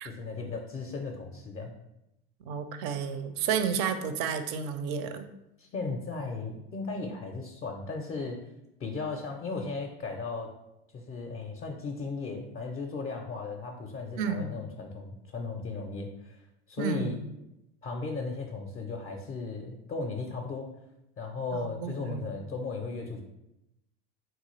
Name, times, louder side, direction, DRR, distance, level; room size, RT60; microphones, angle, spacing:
voice 1, 0.0-1.7 5.6-8.4 8.8-10.5 10.9-16.4 16.7-17.2 17.8-20.7 21.2-23.2, left 4 dB, 30° left, 2 dB, 0.4 m, -36 dB
voice 2, 2.4-5.3 14.2-14.5 16.8-17.2 21.5-22.3, right 6 dB, 60° right, 9 dB, 0.5 m, -31 dB
3.8 x 2.3 x 3.1 m, 0.88 s
hypercardioid pair, 90°, 32 cm